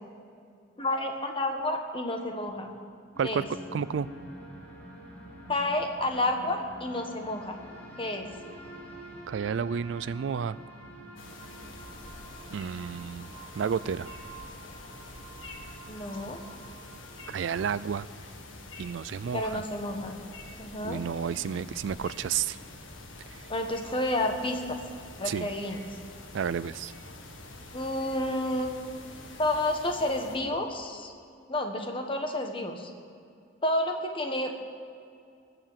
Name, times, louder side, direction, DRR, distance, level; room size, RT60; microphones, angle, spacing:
voice 1, 0.8-2.7 3.2-3.4 5.5-7.6 8.0-8.3 15.9-16.4 19.3-20.1 20.6-21.0 23.5-24.8 25.2-25.8 27.7-28.8 29.4-31.1 31.5-32.9 33.6-34.5, left 1 dB, 25° left, 3 dB, 1.4 m, -30 dB
sound 1, 3.1-17.8, right 1 dB, 10° left, 3.6 m, -47 dB
voice 2, 3.7-4.1 9.3-10.6 12.5-13.3 13.6-14.1 17.3-18.1 18.8-19.6 20.8-22.6 25.3-25.5 26.3-26.9, right 7 dB, 70° right, 17 dB, 0.3 m, -31 dB
sound 2, 11.2-30.4, left 2 dB, 85° left, 1.6 m, -46 dB
20.0 x 7.0 x 7.4 m, 2.4 s
head